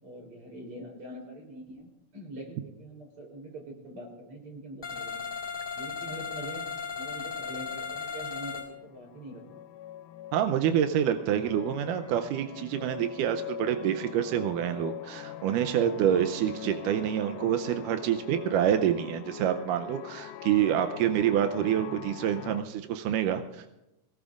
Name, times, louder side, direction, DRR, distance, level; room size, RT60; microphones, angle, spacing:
voice 1, 0.0-5.3 5.7-6.6 7.0-9.4, right 1 dB, 45° right, 0 dB, 4.4 m, -44 dB
sound 1, 4.8-8.7, left 6 dB, 25° left, 1.3 m, -36 dB
sound 2, 6.8-6.9 7.2-22.6, left 12 dB, 80° left, 2.1 m, -43 dB
voice 2, 10.3-23.7, right 10 dB, 90° right, 8 dB, 2.3 m, -27 dB
22.0 x 18.5 x 2.5 m, 0.93 s
omnidirectional pair, 3.7 m